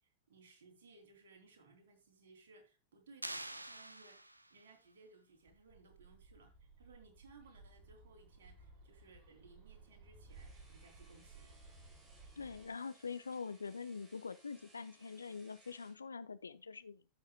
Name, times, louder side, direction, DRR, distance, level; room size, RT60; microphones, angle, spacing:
voice 1, 0.0-4.2 4.5-11.6, right 3 dB, 60° right, 3.1 m, -62 dB
sound 1, 3.2-4.7, right 1 dB, 85° right, 0.6 m, -46 dB
Bird, 5.4-12.7, right 3 dB, 35° right, 4.8 m, -59 dB
sound 2, 10.3-16.0, right 2 dB, 10° right, 3.9 m, -66 dB
voice 2, 12.4-17.0, left 5 dB, 75° left, 0.7 m, -44 dB
15.0 x 6.5 x 2.2 m
figure-of-eight pair, 90°, 0 cm